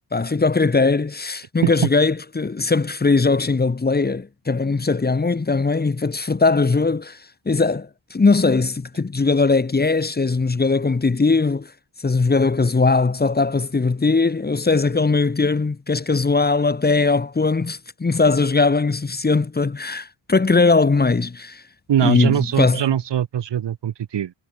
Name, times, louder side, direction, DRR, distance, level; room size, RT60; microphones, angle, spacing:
voice 1, 0.1-7.2 7.5-11.7 12.0-21.6 22.0-22.8, left 3 dB, 20° left, 2.1 m, -19 dB
voice 2, 21.9-24.3, right 10 dB, 70° right, 2.5 m, -22 dB
wide cardioid pair, 160°, 43 cm